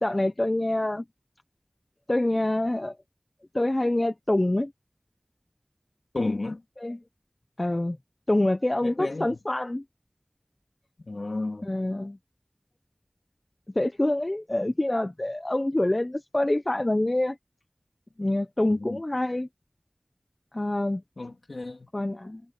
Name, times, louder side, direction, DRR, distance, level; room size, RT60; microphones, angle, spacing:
voice 1, 0.0-1.0 2.1-3.0 3.5-4.7 6.8-7.0 7.6-8.0 8.3-9.8 11.6-12.2 13.8-17.4 18.2-19.5 20.5-21.0 21.9-22.4, left 1 dB, 40° left, 0.8 m, -26 dB
voice 2, 6.1-6.6 8.8-9.4 11.0-11.6 18.7-19.0 21.2-21.9, left 2 dB, 80° left, 3.4 m, -32 dB
wide cardioid pair, 50°, 0 cm